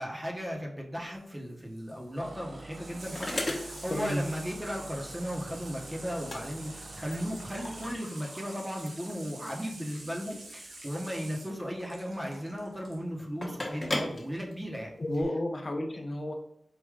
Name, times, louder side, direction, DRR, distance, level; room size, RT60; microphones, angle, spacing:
voice 1, 0.0-14.9, equal, 15° right, 0 dB, 1.0 m, -36 dB
Water tap faucet / Sink (filling or washing), 1.1-13.0 14.3-14.4, right 2 dB, 85° right, 1.0 m, -48 dB
sound 1, 1.9-15.2, left 1 dB, 35° left, 1.1 m, -40 dB
sound 2, 2.2-8.0, right 2 dB, 50° right, 0.6 m, -47 dB
voice 2, 3.9-4.2 15.0-16.3, left 1 dB, 55° left, 2 dB, 0.7 m, -31 dB
4.8 x 2.6 x 3.6 m, 0.75 s
wide cardioid pair, 60°, 0 cm